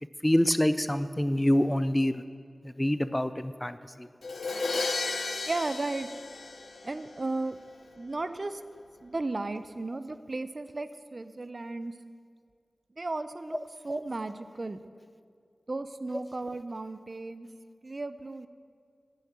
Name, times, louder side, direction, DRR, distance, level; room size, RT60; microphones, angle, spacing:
voice 1, 0.2-2.2 2.6-4.1, left 1 dB, 15° left, 12 dB, 0.4 m, -26 dB
Crash cymbal, 4.2-7.2, left 3 dB, 80° left, 0.5 m, -33 dB
voice 2, 5.5-6.1 6.8-7.6 8.0-8.6 9.0-11.9 13.0-13.6 13.8-14.8 15.7-17.5 17.8-18.5, right 2 dB, 45° right, 12 dB, 0.4 m, -34 dB
8.5 x 7.1 x 7.3 m, 2.2 s
wide cardioid pair, 60°, 0 cm